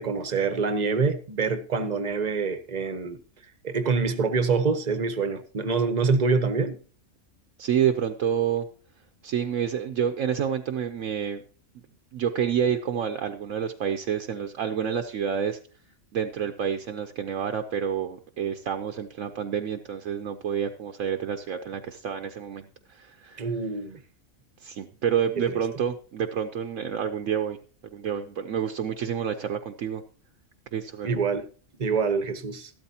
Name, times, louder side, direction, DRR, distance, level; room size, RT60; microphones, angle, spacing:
voice 1, 0.0-3.2 3.6-6.8 23.4-24.0 25.5-25.6 31.0-31.5 31.8-32.7, right 4 dB, 35° right, 0.9 m, -26 dB
voice 2, 7.6-8.7 9.2-11.4 12.1-15.6 16.1-23.4 24.6-27.6 27.8-30.0 30.7-31.1, right 8 dB, 70° right, 1.0 m, -28 dB
13.5 x 12.5 x 2.8 m
omnidirectional pair, 1.5 m